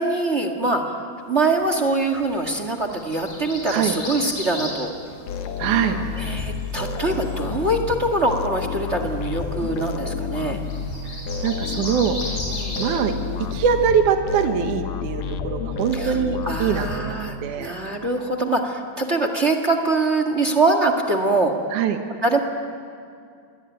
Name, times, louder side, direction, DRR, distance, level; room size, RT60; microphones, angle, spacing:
voice 1, 0.0-4.9 6.2-10.6 12.5-12.8 15.9-16.2 16.5-21.5 22.2-22.4, right 2 dB, 30° right, 5 dB, 1.5 m, -23 dB
sound 1, 1.5-14.0, left 2 dB, 50° left, 7.9 m, -37 dB
sound 2, 5.3-17.5, left 5 dB, 85° left, 2.8 m, -30 dB
voice 2, 5.6-6.0 11.4-12.2 12.8-13.1 13.5-17.8 21.7-22.0, right 8 dB, 75° right, 6 dB, 2.8 m, -23 dB
27.5 x 22.5 x 9.2 m, 2.3 s
omnidirectional pair, 3.6 m